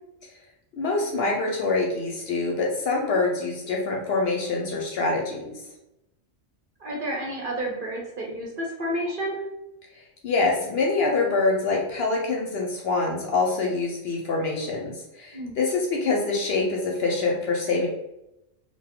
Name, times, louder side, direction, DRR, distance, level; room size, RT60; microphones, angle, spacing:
voice 1, 0.8-5.6 10.2-17.9, left 3 dB, 65° left, 0 dB, 0.7 m, -25 dB
voice 2, 6.8-9.4 15.3-15.6, right 1 dB, 55° right, -2 dB, 0.7 m, -30 dB
2.7 x 2.1 x 3.5 m, 0.89 s
omnidirectional pair, 1.3 m